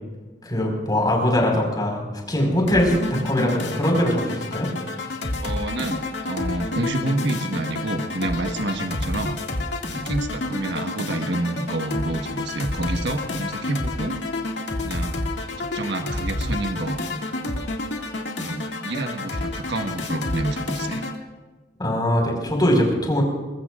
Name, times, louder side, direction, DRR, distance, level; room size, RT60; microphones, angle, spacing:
voice 1, 0.4-4.7 5.0-5.1 21.8-23.2, left 1 dB, 25° left, 0 dB, 4.9 m, -22 dB
sound 1, 2.7-21.2, left 2 dB, 85° left, 2.1 m, -29 dB
voice 2, 5.4-9.4 9.9-14.2 14.8-15.2 15.6-17.0 18.4-21.0, right 2 dB, 80° right, 5 dB, 1.4 m, -28 dB
22.5 x 20.5 x 2.5 m, 1.3 s
head